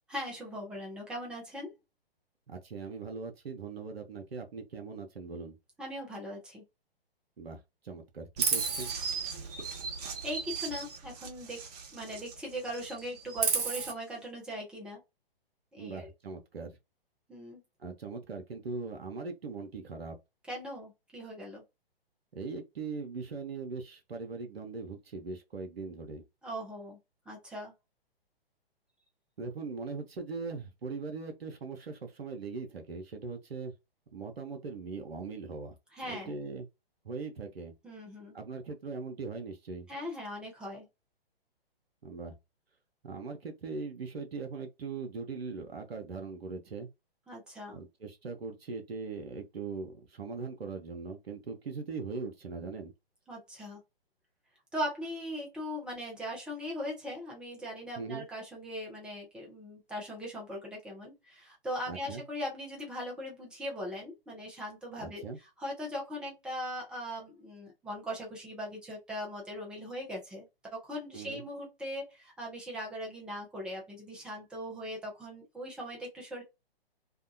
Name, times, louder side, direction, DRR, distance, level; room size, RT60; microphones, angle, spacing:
voice 1, 0.1-1.7 5.8-6.6 10.2-11.6 11.9-15.0 15.7-16.1 17.3-17.6 20.5-21.6 26.4-27.0 27.3-27.7 35.9-36.3 37.8-38.4 39.9-40.9 47.3-47.8 53.3-53.8 54.7-70.5 70.7-76.4, equal, 5° right, 0.5 m, -39 dB
voice 2, 2.5-5.6 7.4-7.6 7.8-8.9 15.8-16.7 17.8-20.2 22.3-26.2 29.4-33.7 34.1-35.7 36.1-36.7 37.0-37.7 38.3-39.9 42.0-42.3 43.0-46.9 47.7-52.9 58.0-58.2 61.9-62.2 65.0-65.4 71.1-71.4, right 4 dB, 75° right, 0.8 m, -40 dB
Chirp tweet, 8.4-12.4 12.7-13.9, right 5 dB, 40° right, 0.9 m, -34 dB
2.7 x 2.2 x 2.6 m
figure-of-eight pair, 125°, 30 cm